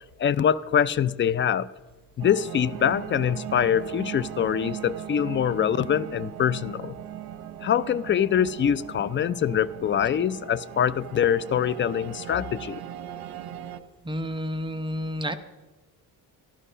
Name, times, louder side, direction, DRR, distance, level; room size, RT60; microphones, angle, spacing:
voice 1, 0.2-1.7 2.2-7.0 7.6-12.8, left 9 dB, 30° left, 0.4 m, -24 dB
sound 1, 2.2-13.8, right 11 dB, 75° right, 0.9 m, -39 dB
voice 2, 14.0-15.4, equal, 15° right, 0.7 m, -30 dB
13.5 x 12.0 x 5.5 m
cardioid pair, 125°, 37 cm